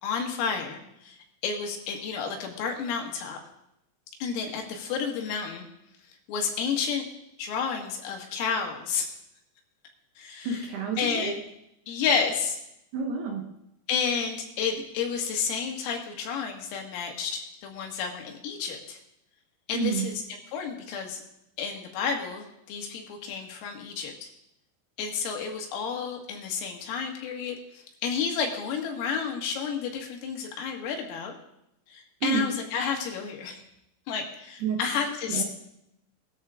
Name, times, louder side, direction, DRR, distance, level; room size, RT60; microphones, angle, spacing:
voice 1, 0.0-1.2 1.4-3.4 4.2-5.7 6.3-7.1 7.4-9.1 10.2-10.7 11.0-11.4 11.9-12.6 13.9-19.0 19.7-21.2 21.6-24.3 25.0-27.6 28.0-31.4 31.9-33.6 34.1-35.4, left 6 dB, 80° left, 2 dB, 4.6 m, -31 dB
voice 2, 10.4-11.3 12.9-13.5 19.7-20.1 32.2-32.5 34.6-34.8 35.3-35.4, right 5 dB, 70° right, 2 dB, 2.7 m, -29 dB
20.0 x 13.5 x 3.7 m, 0.82 s
omnidirectional pair, 6.0 m